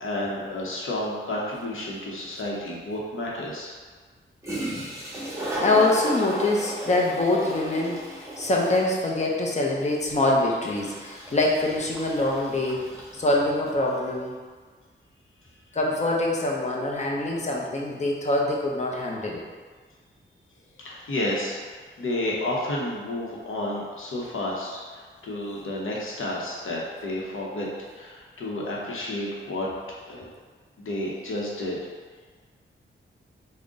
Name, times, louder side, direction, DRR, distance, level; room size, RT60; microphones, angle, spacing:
voice 1, 0.0-3.7 20.8-21.6 22.0-27.7 27.9-29.7 30.1-30.3 30.8-31.8, left 1 dB, 80° left, -4 dB, 0.8 m, -31 dB
Toilet flush, 4.2-4.3 4.4-13.8, right 1 dB, 15° right, 0.8 m, -35 dB
voice 2, 5.6-12.9 13.1-14.3 15.7-19.4, left 2 dB, 35° left, -2 dB, 0.6 m, -24 dB
3.7 x 2.1 x 3.8 m, 1.5 s
wide cardioid pair, 130°, 21 cm